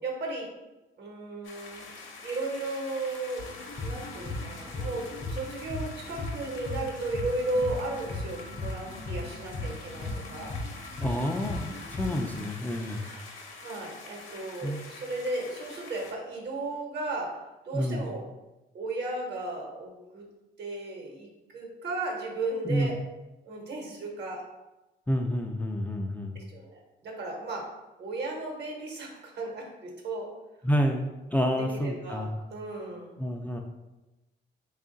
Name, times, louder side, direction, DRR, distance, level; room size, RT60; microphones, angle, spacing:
voice 1, 0.0-0.5 1.0-1.9 2.2-3.5 3.8-10.5 13.0-13.3 13.6-17.4 17.6-18.2 18.7-20.3 20.6-23.0 23.4-24.4 26.3-27.7 28.0-30.3 31.7-32.2 32.5-33.2, right 2 dB, 60° right, 0 dB, 1.1 m, -35 dB
sound 1, 1.4-16.1, left 4 dB, 75° left, 0.7 m, -46 dB
sound 2, 3.4-12.4, left 2 dB, 45° left, 0.6 m, -37 dB
voice 2, 11.0-13.0 14.6-14.8 17.7-18.1 22.7-22.9 25.1-26.4 30.6-32.4 33.2-33.6, equal, 10° left, 2 dB, 0.3 m, -29 dB
3.6 x 2.4 x 3.8 m, 1.0 s
cardioid pair, 90°, 20 cm